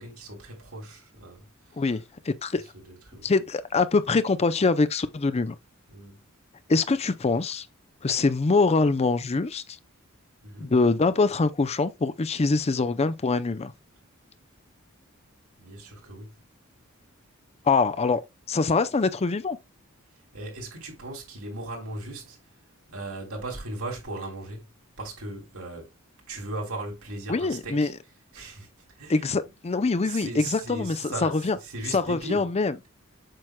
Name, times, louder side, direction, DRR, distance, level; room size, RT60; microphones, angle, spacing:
voice 1, 0.0-1.4 1.9-2.0 2.8-3.3 5.9-6.2 10.4-10.7 15.6-16.3 20.3-22.4 22.9-24.6 25.0-25.9 26.3-27.9 28.3-28.7 29.0-29.2 30.0-32.5, right 2 dB, 85° right, 3.2 m, -37 dB
voice 2, 1.8-2.6 3.2-5.5 6.7-7.7 8.0-9.6 10.6-13.7 17.7-18.2 18.5-19.6 27.3-27.9 29.1-31.6 31.9-32.7, left 3 dB, 30° left, 0.5 m, -24 dB
7.6 x 6.2 x 2.2 m
head